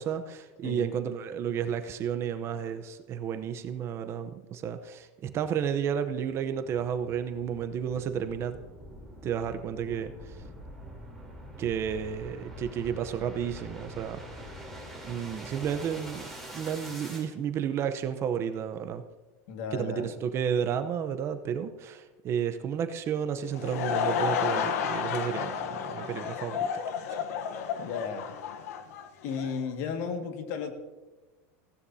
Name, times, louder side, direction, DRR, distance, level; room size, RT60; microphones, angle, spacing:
voice 1, 0.0-8.6 9.2-10.3 11.6-14.2 15.0-19.0 19.7-26.9, right 8 dB, 35° right, 9 dB, 0.8 m, -32 dB
sound 1, 6.1-17.3, equal, 5° left, 3.4 m, -45 dB
voice 2, 19.5-20.1 27.8-28.3 29.2-30.7, left 6 dB, 60° left, 5 dB, 1.9 m, -34 dB
Laughter / Crowd, 23.3-29.6, left 7 dB, 85° left, 1.0 m, -31 dB
19.0 x 16.0 x 2.8 m, 1.2 s
supercardioid pair, 150°, 8 cm